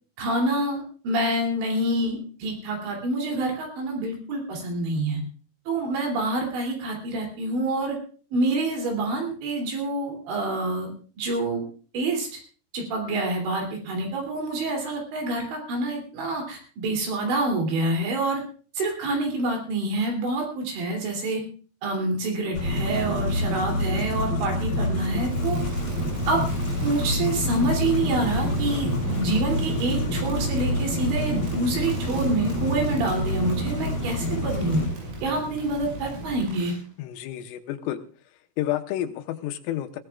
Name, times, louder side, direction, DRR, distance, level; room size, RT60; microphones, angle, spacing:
voice 1, 0.2-5.2 5.7-8.0 8.3-11.7 11.9-12.4 12.7-18.4 18.7-21.4 21.8-25.6 26.3-26.4 26.8-34.8 35.2-36.7, right 2 dB, 65° right, 2 dB, 5.0 m, -27 dB
sound 1, 22.5-34.9, left 1 dB, 45° left, 7.2 m, -27 dB
Crackle, 25.2-36.8, right 1 dB, 85° right, 8.6 m, -35 dB
voice 2, 37.0-38.0 38.6-40.0, left 13 dB, 85° left, 6 dB, 3.5 m, -30 dB
21.5 x 16.5 x 2.4 m, 0.41 s
omnidirectional pair, 6.0 m